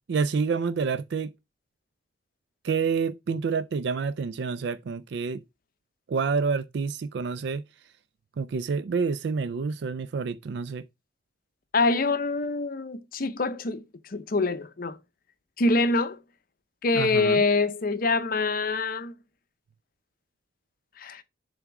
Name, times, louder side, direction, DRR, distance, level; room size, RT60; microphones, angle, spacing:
voice 1, 0.1-1.3 2.6-5.4 6.1-7.6 8.4-10.8 16.9-17.4, right 5 dB, 65° right, 0.4 m, -28 dB
voice 2, 11.7-13.8 14.1-15.0 15.6-16.2 16.8-19.1 21.0-21.2, left 3 dB, 50° left, 0.7 m, -25 dB
7.2 x 3.5 x 5.9 m
head